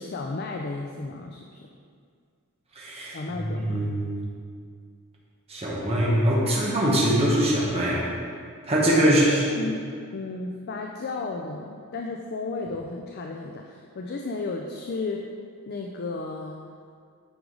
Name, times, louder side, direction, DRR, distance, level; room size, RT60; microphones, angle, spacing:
voice 1, 0.0-1.7 3.1-3.8 9.0-9.9 10.1-15.2 15.7-16.6, left 3 dB, 45° left, 2 dB, 0.4 m, -33 dB
voice 2, 2.8-4.2 5.5-8.1 8.7-9.4, right 1 dB, 25° right, -5 dB, 1.1 m, -23 dB
8.0 x 4.9 x 3.8 m, 2.1 s
head